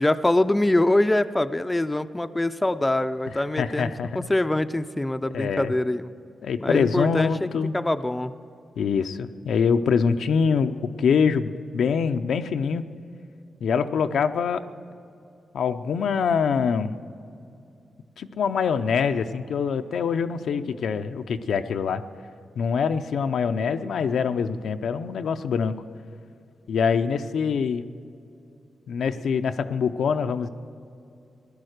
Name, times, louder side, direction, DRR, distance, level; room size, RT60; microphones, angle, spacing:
voice 1, 0.0-6.1 6.6-8.3, left 1 dB, 15° left, 11 dB, 0.4 m, -24 dB
voice 2, 3.6-4.3 5.3-5.7 6.4-7.7 8.8-12.8 13.6-14.6 15.5-16.9 18.2-22.0 22.6-25.8 26.7-27.8 28.9-30.5, left 6 dB, 85° left, 8 dB, 0.6 m, -24 dB
16.5 x 11.5 x 6.6 m, 2.5 s
wide cardioid pair, 120°, 0 cm